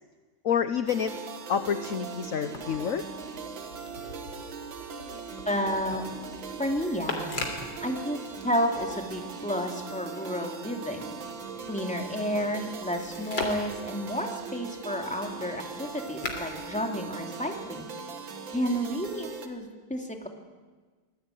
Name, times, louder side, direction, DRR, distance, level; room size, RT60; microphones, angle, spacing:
voice 1, 0.4-1.2 1.5-3.0, left 8 dB, 55° left, 10 dB, 1.0 m, -28 dB
sound 1, 0.9-19.5, right 5 dB, 70° right, 2.5 m, -40 dB
sound 2, 2.3-9.2 9.6-17.7 18.6-19.4, left 3 dB, 70° left, 4.1 m, -42 dB
voice 2, 5.4-6.0 6.6-7.3 7.8-8.2 8.4-11.2 11.7-17.9 18.5-20.3, equal, 5° left, 2 dB, 2.6 m, -31 dB
24.5 x 20.0 x 9.3 m, 1.4 s
omnidirectional pair, 2.2 m